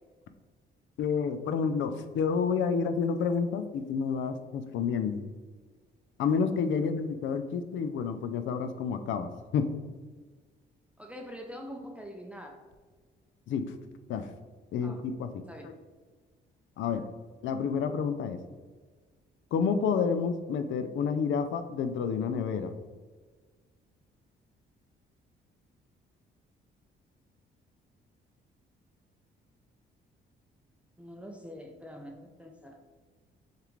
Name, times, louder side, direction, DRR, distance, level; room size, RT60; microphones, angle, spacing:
voice 1, 1.0-5.2 6.2-9.7 13.5-13.6 14.1-14.3 14.7-15.7 16.8-17.0 17.4-18.4 19.5-22.7, left 6 dB, 75° left, 9 dB, 0.5 m, -29 dB
voice 2, 11.0-12.6 14.8-15.0 15.5-15.7 31.0-32.8, equal, 5° right, 2 dB, 0.5 m, -44 dB
6.5 x 2.5 x 3.1 m, 1.5 s
cardioid pair, 90°, 20 cm